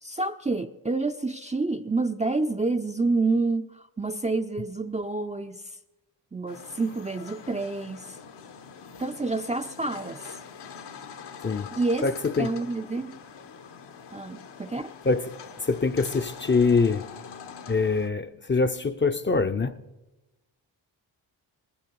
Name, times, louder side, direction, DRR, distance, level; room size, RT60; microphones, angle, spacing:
voice 1, 0.0-5.6 6.3-8.1 9.0-10.2 11.7-12.1 12.4-13.2 14.1-14.9, right 3 dB, 15° right, 0.5 m, -28 dB
sound 1, 6.5-18.1, left 6 dB, 60° left, 1.1 m, -44 dB
voice 2, 12.0-12.5 15.0-15.3 15.6-17.1 17.7-19.8, left 4 dB, 25° left, 0.6 m, -24 dB
19.0 x 8.6 x 4.7 m
supercardioid pair, 50°, 46 cm